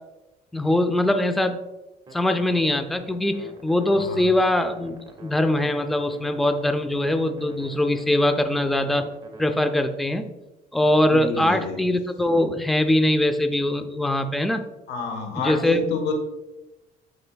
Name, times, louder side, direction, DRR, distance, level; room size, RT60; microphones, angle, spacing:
voice 1, 0.5-1.6 2.1-5.0 5.2-9.1 9.4-10.3 10.7-14.6 15.4-15.9, left 1 dB, ahead, 8 dB, 0.4 m, -22 dB
sound 1, 2.1-9.4, right 2 dB, 25° right, 1.4 m, -46 dB
voice 2, 3.9-4.3 11.1-11.8 14.9-16.1, left 4 dB, 90° left, 5 dB, 1.2 m, -29 dB
12.0 x 4.3 x 2.2 m, 1.0 s
cardioid pair, 110°, 17 cm